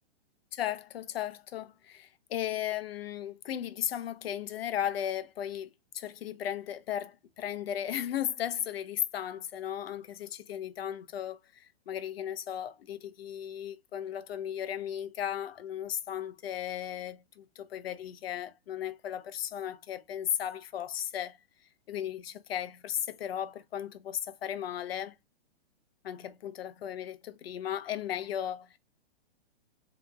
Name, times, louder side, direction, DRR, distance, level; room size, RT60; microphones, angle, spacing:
voice 1, 0.5-5.7 5.9-21.4 21.9-25.1 26.0-28.8, left 10 dB, 65° left, 0.7 m, -36 dB
3.4 x 3.0 x 3.5 m
hypercardioid pair, 145°, 32 cm